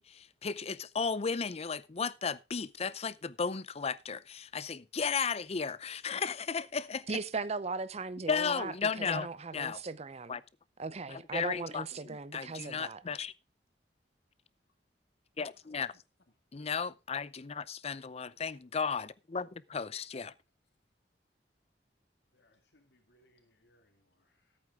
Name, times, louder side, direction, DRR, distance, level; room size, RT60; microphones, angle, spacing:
voice 1, 0.0-7.1 8.3-9.3 9.5-9.8 10.3-10.4 11.1-13.3 15.4-15.9 16.5-20.3, left 5 dB, 35° left, 0.6 m, -35 dB
voice 2, 7.1-10.4 10.8-13.0, right 4 dB, 35° right, 0.7 m, -38 dB
voice 3, 17.6-18.3 22.3-24.6, left 1 dB, 70° left, 2.2 m, -70 dB
14.5 x 8.7 x 3.6 m
head